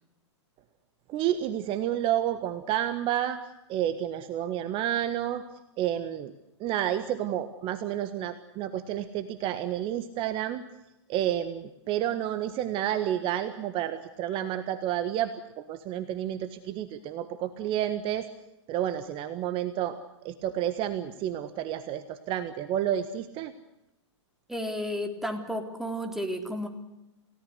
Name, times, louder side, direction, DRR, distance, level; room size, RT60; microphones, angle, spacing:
voice 1, 1.1-3.4 3.7-5.4 5.8-6.3 6.6-10.6 11.1-18.3 18.7-20.0 20.2-23.5, right 11 dB, 35° right, 11 dB, 1.6 m, -30 dB
voice 2, 24.5-26.7, equal, ahead, 5 dB, 3.7 m, -32 dB
29.5 x 17.5 x 8.0 m, 0.94 s
hypercardioid pair, 120°, 15 cm